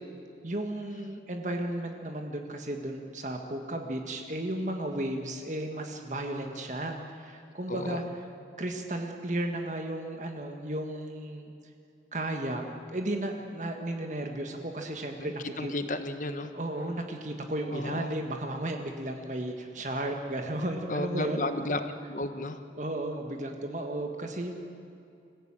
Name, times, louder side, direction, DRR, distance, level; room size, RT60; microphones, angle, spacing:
voice 1, 0.4-8.0 8.6-11.5 12.1-12.6 12.9-15.7 16.5-21.5 22.8-24.6, right 1 dB, 45° right, 3 dB, 1.7 m, -34 dB
voice 2, 7.7-8.0 15.2-16.5 17.7-18.1 20.9-22.6, left 2 dB, 45° left, 8 dB, 1.4 m, -33 dB
25.5 x 15.5 x 8.9 m, 2.6 s
head